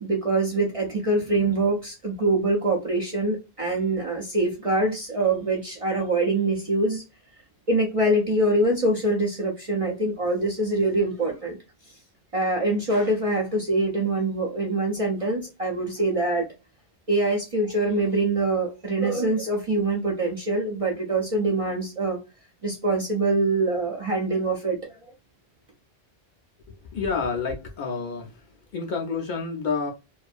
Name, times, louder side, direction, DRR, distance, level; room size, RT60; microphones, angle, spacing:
voice 1, 0.0-7.0 7.7-11.6 12.3-16.5 17.1-22.2 22.6-25.0, right 2 dB, 45° right, 0.4 m, -24 dB
voice 2, 26.9-28.5 28.7-29.9, left 5 dB, 60° left, 0.6 m, -29 dB
2.5 x 2.3 x 2.3 m
omnidirectional pair, 1.1 m